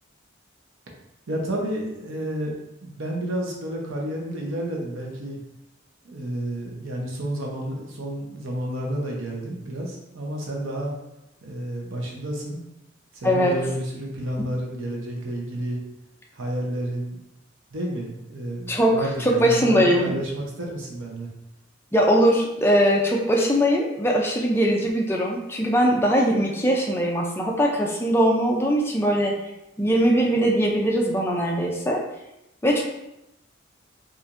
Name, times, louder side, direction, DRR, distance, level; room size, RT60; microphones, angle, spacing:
voice 1, 1.3-2.5 2.8-5.4 6.0-10.9 11.4-12.6 13.1-15.8 16.3-17.2 17.7-21.3, right 1 dB, 80° right, -1 dB, 0.8 m, -30 dB
voice 2, 13.2-13.5 18.7-20.1 21.9-29.3 29.8-32.0 32.6-32.8, equal, 10° left, -1 dB, 0.4 m, -21 dB
4.4 x 2.5 x 2.5 m, 0.89 s
head